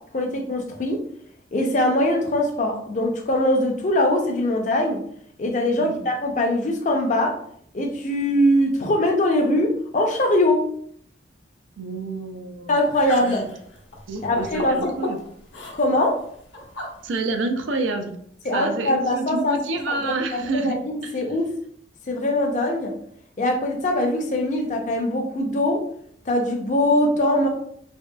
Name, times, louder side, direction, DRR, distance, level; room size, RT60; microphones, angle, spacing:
voice 1, 0.1-1.0 1.5-5.0 5.4-7.3 7.7-10.7 12.7-13.4 14.2-14.9 15.7-16.2 18.5-19.6 19.9-21.5 22.1-22.9 23.4-25.8 26.3-27.5, left 1 dB, 40° left, 3 dB, 0.4 m, -22 dB
voice 2, 11.8-12.8 13.2-13.5 14.1-15.2 17.0-18.2 18.5-21.1, right 3 dB, 90° right, 6 dB, 0.4 m, -28 dB
sound 1, 12.8-17.4, left 2 dB, 75° left, 0.7 m, -35 dB
2.9 x 2.6 x 2.2 m, 0.65 s
head